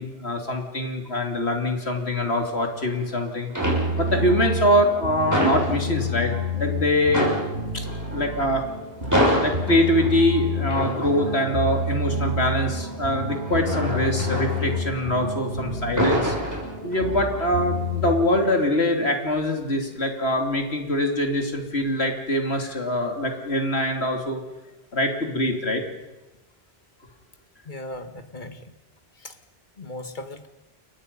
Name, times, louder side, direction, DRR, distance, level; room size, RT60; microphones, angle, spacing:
voice 1, 0.0-3.5 3.9-7.3 7.7-8.7 9.4-16.4 16.8-24.4 24.9-25.8, left 1 dB, 90° left, 3 dB, 3.4 m, -24 dB
sound 1, 2.4-3.1 3.5-4.3 4.6-6.4 6.7-6.8 7.1-15.4 15.7-17.2 17.6-17.9, equal, 15° right, 6.2 m, -27 dB
sound 2, 3.6-18.1, left 2 dB, 90° right, 7.3 m, -29 dB
voice 2, 27.7-28.7 29.2-29.4 29.8-30.5, left 1 dB, 50° left, 8 dB, 1.8 m, -37 dB
30.0 x 23.0 x 5.5 m, 1.0 s
omnidirectional pair, 1.0 m